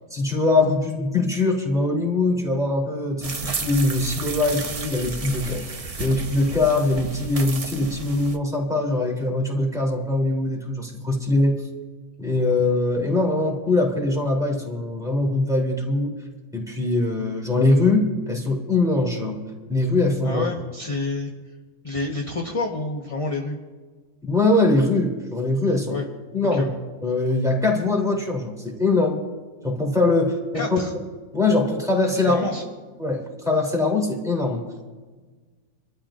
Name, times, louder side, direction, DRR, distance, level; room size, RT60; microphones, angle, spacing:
voice 1, 0.1-11.6 12.2-16.2 16.5-19.4 19.7-20.4 24.2-25.9 26.3-26.6 27.0-29.2 29.6-30.8 31.3-32.5 33.0-34.6, left 2 dB, ahead, -2 dB, 3.0 m, -22 dB
sound 1, 3.2-8.4, right 4 dB, 40° right, 0.5 m, -33 dB
voice 2, 20.2-21.3 21.8-23.6 25.9-26.1 26.5-26.7 30.5-30.9 32.1-32.6, left 3 dB, 25° left, 0 dB, 1.0 m, -28 dB
27.0 x 13.0 x 2.5 m, 1.4 s
omnidirectional pair, 1.7 m